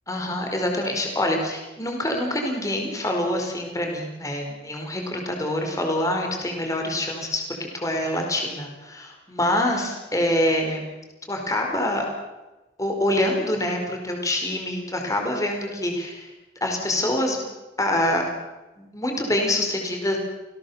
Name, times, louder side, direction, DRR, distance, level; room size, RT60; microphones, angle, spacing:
voice 1, 0.1-10.9 11.3-12.1 12.8-16.3 16.6-17.4 17.8-18.2 18.8-20.2, left 1 dB, 20° left, 2 dB, 4.5 m, -25 dB
28.5 x 17.5 x 7.2 m, 1.1 s
head